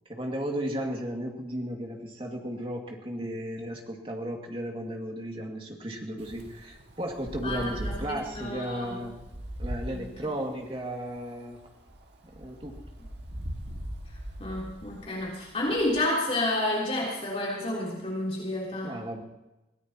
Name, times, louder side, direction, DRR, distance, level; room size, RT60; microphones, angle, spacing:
voice 1, 0.1-9.1 9.6-11.6 12.3-12.8 18.8-19.2, right 1 dB, 30° right, 1 dB, 2.3 m, -34 dB
Wind, 6.2-16.1, equal, 70° right, 2.0 m, -41 dB
voice 2, 7.4-8.9 9.9-10.0 14.4-19.0, left 1 dB, 35° left, -4 dB, 3.6 m, -30 dB
23.5 x 17.0 x 3.0 m, 1.0 s
head